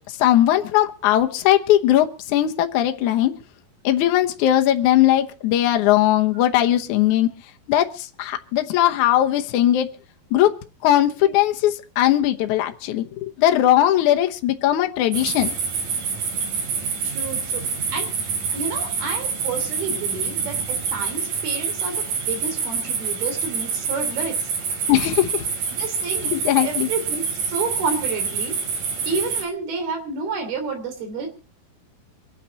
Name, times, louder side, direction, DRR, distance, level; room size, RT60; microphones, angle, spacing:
voice 1, 0.0-3.3 3.8-7.3 7.7-9.9 10.3-10.6 10.8-15.6 24.9-25.5 26.2-26.9, left 12 dB, 65° left, 5 dB, 2.1 m, -19 dB
sound 1, 15.1-29.4, right 5 dB, 60° right, 4.0 m, -27 dB
voice 2, 17.0-17.6 17.9-18.1 18.5-24.5 25.7-26.3 26.6-28.6 29.1-31.3, right 4 dB, 80° right, 6 dB, 5.0 m, -30 dB
25.5 x 9.2 x 4.2 m, 0.34 s
omnidirectional pair, 4.3 m